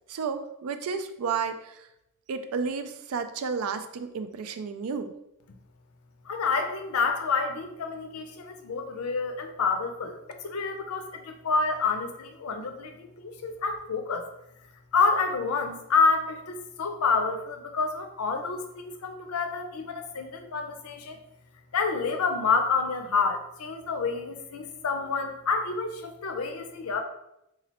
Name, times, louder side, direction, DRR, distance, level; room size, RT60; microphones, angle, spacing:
voice 1, 0.1-1.9 2.3-5.1, right 5 dB, 85° right, 9 dB, 0.4 m, -32 dB
voice 2, 6.3-14.3 14.9-21.2 21.7-27.0, left 4 dB, 80° left, 6 dB, 0.5 m, -28 dB
3.8 x 3.0 x 2.9 m, 0.85 s
head